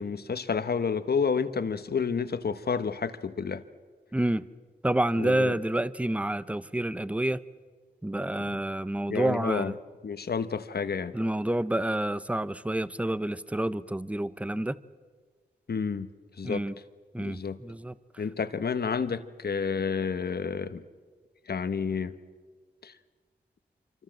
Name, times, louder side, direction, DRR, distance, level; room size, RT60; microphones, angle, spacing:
voice 1, 0.0-3.6 5.2-5.5 8.4-8.6 9.1-9.7 10.0-11.2 15.7-16.1 16.4-16.6 17.2-17.6 18.2-20.8 21.5-22.1 22.8-22.9, left 5 dB, 65° left, 12 dB, 1.2 m, -30 dB
voice 2, 4.1-4.5 4.8-7.4 8.0-9.8 11.1-14.8 16.4-16.7 17.1-17.9, right 1 dB, 5° right, 16 dB, 0.7 m, -28 dB
27.0 x 25.0 x 7.7 m, 1.5 s
wide cardioid pair, 95°, 18 cm